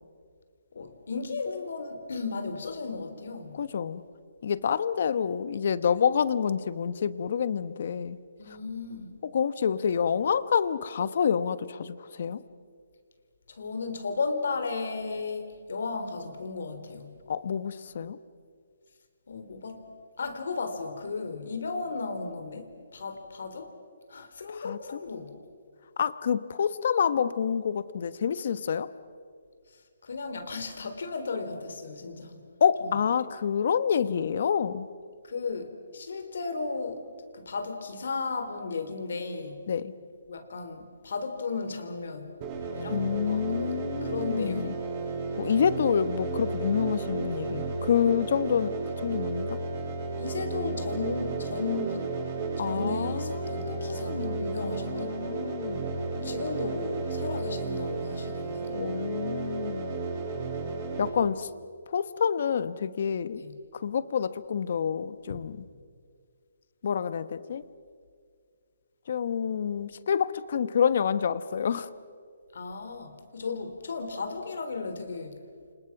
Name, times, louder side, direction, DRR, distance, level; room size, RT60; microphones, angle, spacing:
voice 1, 0.7-3.6 8.4-9.1 13.5-17.2 19.3-19.8 20.2-23.7 24.1-25.3 29.7-32.4 32.8-32.9 35.2-37.1 37.3-39.6 40.3-42.4 42.7-44.8 48.5-48.6 50.2-52.1 52.6-55.1 56.1-58.7 63.3-63.5 65.3-65.4 72.5-75.4, left 4 dB, 70° left, 8 dB, 3.9 m, -35 dB
voice 2, 3.6-4.0 4.4-8.2 9.3-12.4 17.3-18.2 24.5-25.0 26.0-28.9 32.6-34.9 39.7-39.9 42.9-44.7 45.4-48.7 49.0-49.6 52.6-55.9 58.7-60.1 61.0-61.5 61.9-63.4 63.7-65.6 66.8-67.7 69.1-71.9, left 7 dB, 50° left, 15 dB, 1.2 m, -28 dB
sound 1, 42.4-61.1, right 3 dB, 25° right, 7.9 m, -33 dB
29.5 x 26.5 x 6.0 m, 2.1 s
hypercardioid pair, 165°, 0 cm